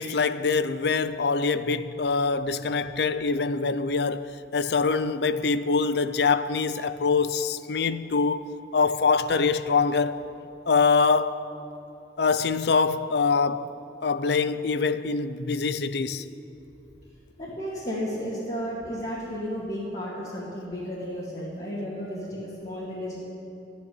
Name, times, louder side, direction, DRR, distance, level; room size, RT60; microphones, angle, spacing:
voice 1, 0.0-10.2 10.7-11.5 12.2-13.7 14.0-16.2, left 4 dB, 60° left, 0.5 m, -24 dB
voice 2, 17.4-23.2, equal, 40° left, 2.5 m, -33 dB
14.0 x 9.5 x 9.6 m
head